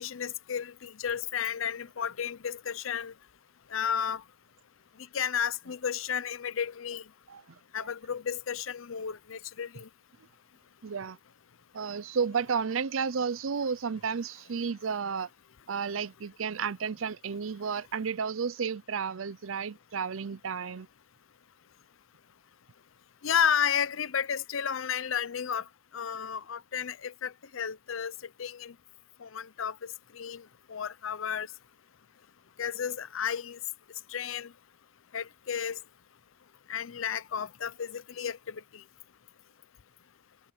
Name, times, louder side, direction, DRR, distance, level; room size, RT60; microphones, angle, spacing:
voice 1, 0.0-3.1 3.7-4.2 5.1-7.0 7.7-9.9 23.2-25.6 25.9-28.1 28.4-28.7 29.2-30.4 30.7-31.5 32.6-33.6 34.1-34.5 35.1-35.8 36.7-38.6, left 8 dB, 80° left, 0.6 m, -32 dB
voice 2, 7.3-7.9 10.8-11.2 11.7-15.3 15.7-20.9, right 6 dB, 90° right, 0.6 m, -32 dB
head